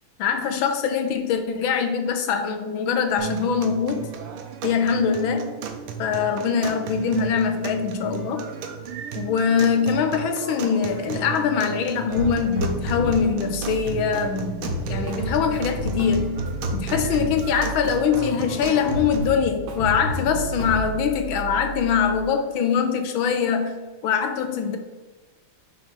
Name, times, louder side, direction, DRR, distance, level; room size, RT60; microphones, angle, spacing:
voice 1, 0.2-4.1 4.6-5.5 6.0-8.5 9.1-16.4 16.7-23.8 24.0-24.8, left 6 dB, 75° left, 6 dB, 1.3 m, -23 dB
sound 1, 3.2-19.2, right 7 dB, 85° right, 1.6 m, -34 dB
sound 2, 12.1-22.2, equal, 60° left, 1.7 m, -31 dB
Drum kit, 13.7-14.3 14.6-18.0 18.3-21.1, equal, 60° right, 1.3 m, -38 dB
6.0 x 3.6 x 5.3 m, 1.3 s
omnidirectional pair, 2.4 m